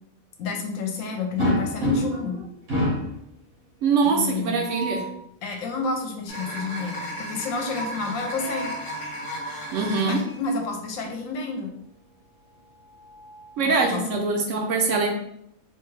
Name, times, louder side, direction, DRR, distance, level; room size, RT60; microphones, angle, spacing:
voice 1, 0.4-2.4 4.0-4.7 5.4-8.7 10.0-11.7 13.6-14.0, left 3 dB, 75° left, 3 dB, 1.0 m, -30 dB
sound 1, 1.4-2.3 2.7-3.2 4.4-5.2 7.8-8.8 10.3-10.4 10.8-10.9 12.4-13.7, equal, 85° right, 1.5 m, -29 dB
voice 2, 3.8-5.1 9.7-10.2 13.6-15.1, right 4 dB, 70° right, 2 dB, 0.8 m, -23 dB
sound 2, 6.3-10.4, equal, 45° left, 1.0 m, -34 dB
3.3 x 2.3 x 3.1 m, 0.76 s
omnidirectional pair, 1.5 m